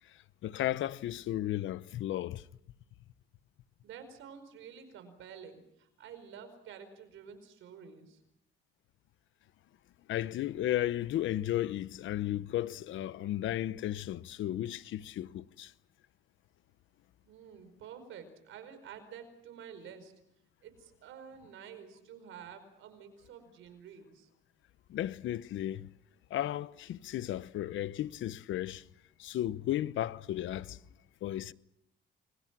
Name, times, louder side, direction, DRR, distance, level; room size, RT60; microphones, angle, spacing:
voice 1, 0.0-2.4 10.1-15.7 24.9-25.9 26.3-28.8 29.2-30.8 31.2-31.5, left 13 dB, 75° left, 0.9 m, -34 dB
voice 2, 3.8-8.2 17.3-20.1 20.6-24.3, right 7 dB, 85° right, 5.0 m, -50 dB
29.5 x 23.5 x 6.1 m
cardioid pair, 90°, 20 cm